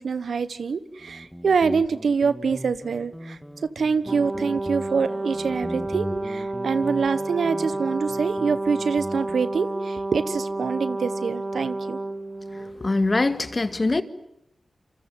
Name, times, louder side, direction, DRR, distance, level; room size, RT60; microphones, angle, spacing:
voice 1, 0.0-3.4 3.7-12.0, right 5 dB, 80° right, 1.3 m, -25 dB
Guitar, 1.0-9.5, equal, 5° right, 1.8 m, -39 dB
Brass instrument, 4.0-12.8, right 2 dB, 45° right, 4.8 m, -30 dB
voice 2, 12.5-14.0, left 2 dB, 40° left, 2.0 m, -23 dB
27.5 x 25.5 x 7.7 m
cardioid pair, 45°, 0 cm